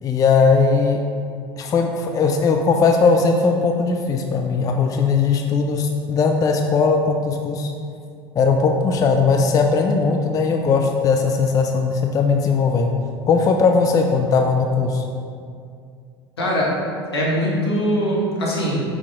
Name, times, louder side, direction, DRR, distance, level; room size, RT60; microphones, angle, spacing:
voice 1, 0.0-1.0 1.6-7.7 8.4-12.9 13.3-15.0, left 4 dB, 25° left, 3 dB, 0.4 m, -18 dB
voice 2, 16.4-16.7 17.1-18.8, equal, 75° left, -5 dB, 1.4 m, -21 dB
5.7 x 4.7 x 3.6 m, 2.3 s
figure-of-eight pair, 70°, 13 cm